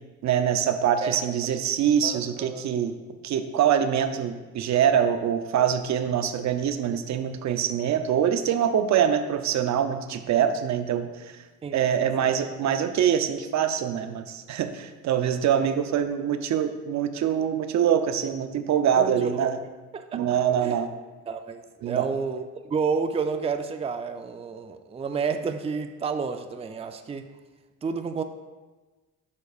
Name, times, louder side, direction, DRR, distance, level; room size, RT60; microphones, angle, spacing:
voice 1, 0.2-3.0 3.2-11.4 11.7-19.6 20.1-20.9 21.8-22.1, right 9 dB, 65° right, 8 dB, 0.6 m, -24 dB
voice 2, 2.0-2.7 11.6-11.8 12.2-12.3 18.9-19.5 19.9-20.2 20.6-20.8 21.3-27.3 27.8-28.2, right 5 dB, 20° right, 7 dB, 0.4 m, -30 dB
9.5 x 6.5 x 2.4 m, 1.2 s
cardioid pair, 90°, 30 cm